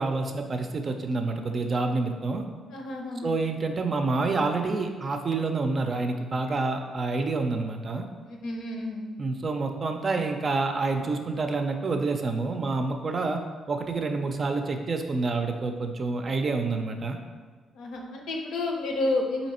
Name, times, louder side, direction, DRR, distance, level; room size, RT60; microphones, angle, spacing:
voice 1, 0.0-2.4 3.2-8.1 9.2-13.4 13.7-17.2, right 3 dB, 40° right, 5 dB, 0.5 m, -28 dB
voice 2, 2.7-3.3 8.2-9.0 17.8-19.5, left 2 dB, 75° left, 1 dB, 0.7 m, -30 dB
4.0 x 2.9 x 4.2 m, 1.5 s
cardioid pair, 90°, 0 cm